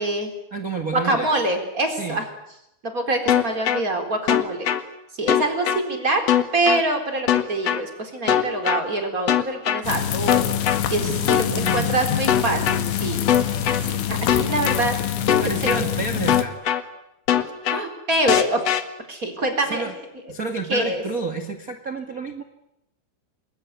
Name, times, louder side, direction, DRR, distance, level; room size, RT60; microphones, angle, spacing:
voice 1, 0.0-0.3 0.9-2.3 2.8-4.7 5.2-6.2 6.5-10.5 10.9-13.2 13.8-15.0 15.4-15.5 17.7-18.6 19.1-19.9 20.7-21.0, right 2 dB, 20° right, 4 dB, 3.8 m, -25 dB
voice 2, 0.5-1.3 2.0-2.2 11.1-11.9 15.4-16.6 19.6-19.9 20.3-22.4, right 4 dB, 90° right, 4 dB, 0.7 m, -30 dB
sound 1, 3.3-3.8 4.3-4.8 5.3-5.8 6.3-6.8 7.3-7.8 8.3-8.8 9.3-9.8 10.3-10.8 11.3-11.8 12.3-12.8 13.3-13.8 14.3-14.8 15.3-15.8 16.3-16.8 17.3-17.8 18.3-18.8, left 10 dB, 65° left, 1.6 m, -20 dB
sound 2, 9.8-16.4, left 10 dB, 85° left, 4.2 m, -26 dB
28.5 x 21.0 x 9.5 m, 0.84 s
omnidirectional pair, 5.4 m